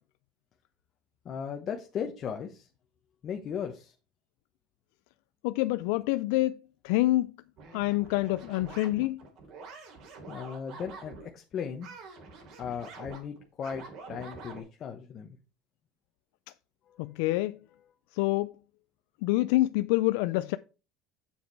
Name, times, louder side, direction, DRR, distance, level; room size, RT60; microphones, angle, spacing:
voice 1, 1.2-2.7 3.2-3.9 10.3-11.9 12.6-13.8 14.1-15.4, left 7 dB, 40° left, 1.0 m, -37 dB
voice 2, 5.4-7.3 7.7-9.2 17.0-17.6 18.1-18.5 19.2-20.6, left 18 dB, 80° left, 0.3 m, -27 dB
sound 1, 7.6-11.3 11.8-14.6, right 4 dB, 60° right, 3.2 m, -46 dB
7.3 x 7.0 x 4.6 m
cardioid pair, 130°, 0 cm